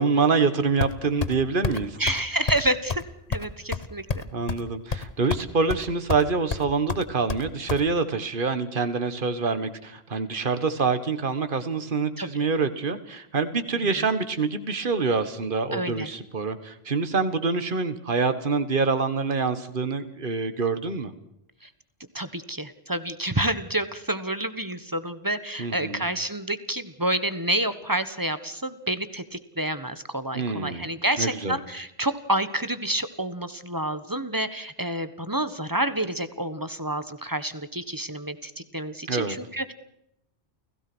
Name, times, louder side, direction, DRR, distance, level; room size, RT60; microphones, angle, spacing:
voice 1, 0.0-2.0 4.3-21.1 25.6-26.0 30.3-30.9 31.2-31.6 39.1-39.4, right 4 dB, 50° right, 11 dB, 1.8 m, -26 dB
sound 1, 0.8-1.4 1.6-1.8 2.1-2.2 2.5-2.6 2.9-3.0 3.3-4.6 4.9-5.4 5.7-6.2 6.5-7.8, left 5 dB, 35° left, 1.2 m, -29 dB
voice 2, 2.0-3.0 3.3-4.3 12.2-12.5 13.8-14.1 15.7-16.1 21.6-21.7 22.1-39.7, right 1 dB, 20° right, 12 dB, 1.4 m, -29 dB
29.5 x 17.0 x 6.2 m, 0.82 s
omnidirectional pair, 1.1 m